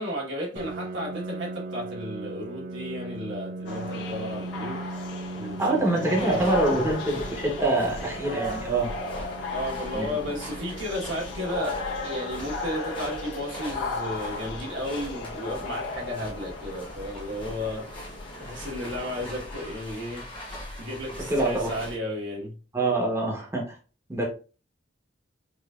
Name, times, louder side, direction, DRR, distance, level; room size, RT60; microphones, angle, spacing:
voice 1, 0.0-5.1 5.4-6.9 7.6-7.9 9.5-11.8 12.0-18.1 18.4-22.5, left 1 dB, 80° right, 1.3 m, -34 dB
Piano, 0.6-16.0, right 2 dB, 50° right, 0.4 m, -40 dB
sound 1, 3.6-19.8, left 3 dB, 75° left, 1.3 m, -36 dB
voice 2, 5.6-8.9 9.9-10.2 21.3-21.7 22.7-23.6 24.1-24.2, right 2 dB, 15° right, 0.9 m, -25 dB
sound 2, 6.1-22.0, left 1 dB, 25° left, 1.2 m, -41 dB
4.9 x 2.6 x 2.3 m
head